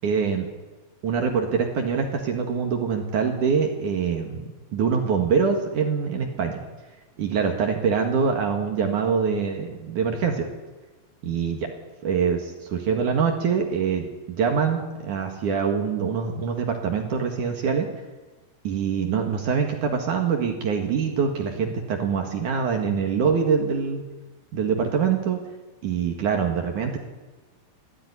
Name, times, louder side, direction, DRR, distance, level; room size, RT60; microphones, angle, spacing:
voice 1, 0.0-0.5 1.0-6.6 7.2-10.5 11.2-11.7 12.0-17.9 18.6-24.0 24.5-25.4 25.8-27.0, right 6 dB, 55° right, 3 dB, 2.4 m, -24 dB
21.0 x 13.5 x 9.9 m, 1.2 s
omnidirectional pair, 5.8 m